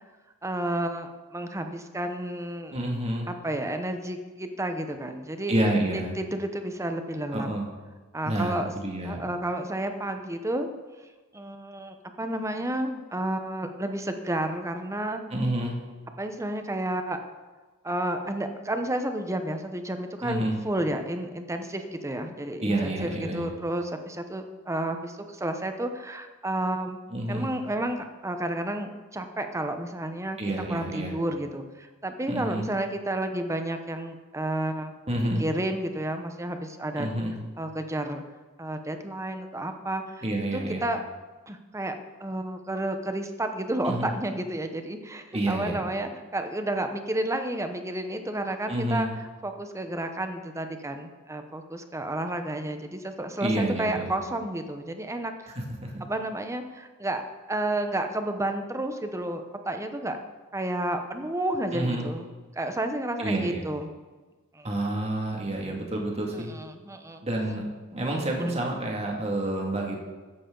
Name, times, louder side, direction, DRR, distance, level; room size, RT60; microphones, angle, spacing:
voice 1, 0.4-2.8 3.3-5.5 5.9-7.5 8.1-8.7 9.0-10.7 11.3-15.2 16.2-17.2 17.8-27.0 27.3-30.4 30.7-34.9 35.4-37.1 37.6-38.2 38.6-40.2 40.5-41.0 41.5-55.5 56.0-57.2 57.5-60.2 60.5-62.3 62.5-63.9 64.5-64.7 66.3-67.2, right 1 dB, 15° right, 7 dB, 0.9 m, -31 dB
voice 2, 2.7-3.3 5.5-6.1 7.3-7.7 8.2-9.2 15.3-15.7 20.2-20.6 22.6-23.5 27.1-27.5 30.4-31.1 32.3-32.7 35.1-35.4 37.0-37.4 40.2-40.8 43.8-44.1 45.3-45.8 48.7-49.1 53.4-54.1 55.8-55.9 61.7-62.1 63.2-63.6 64.6-66.5 67.2-67.6 67.9-70.0, right 1 dB, 30° right, -1 dB, 2.2 m, -28 dB
14.0 x 9.8 x 3.9 m, 1.3 s
head